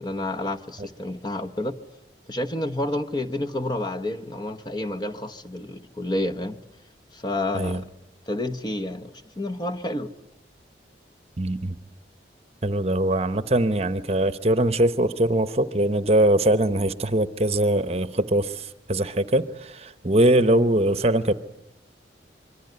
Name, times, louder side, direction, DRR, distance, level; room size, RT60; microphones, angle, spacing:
voice 1, 0.0-1.8 2.3-6.6 7.1-7.8 8.3-10.1, left 1 dB, 25° left, 7 dB, 1.2 m, -29 dB
voice 2, 11.4-11.8 12.6-21.3, right 1 dB, 35° right, 12 dB, 1.0 m, -22 dB
26.0 x 23.5 x 9.5 m, 0.84 s
head